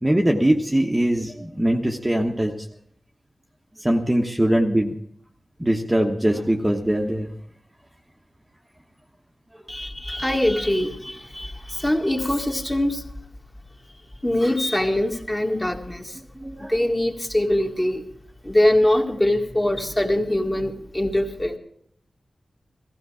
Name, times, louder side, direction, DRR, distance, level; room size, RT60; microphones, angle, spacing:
voice 1, 0.0-2.5 3.8-5.0 5.6-7.3 16.4-16.7, right 1 dB, 15° right, 1.2 m, -21 dB
voice 2, 9.7-13.0 14.2-16.2 16.6-18.1 18.4-21.6, left 1 dB, 15° left, 1.8 m, -23 dB
17.0 x 15.0 x 4.9 m
wide cardioid pair, 110°, 0 cm